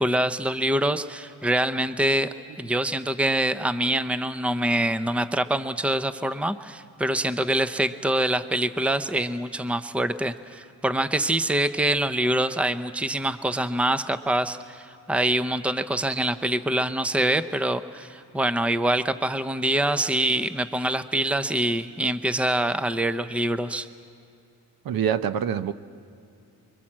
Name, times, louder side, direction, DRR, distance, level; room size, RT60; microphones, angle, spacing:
voice 1, 0.0-23.9, right 1 dB, 5° right, 12 dB, 0.7 m, -25 dB
voice 2, 24.8-25.7, right 8 dB, 65° right, 12 dB, 0.9 m, -25 dB
25.0 x 23.5 x 7.5 m, 2.5 s
cardioid pair, 95°, 38 cm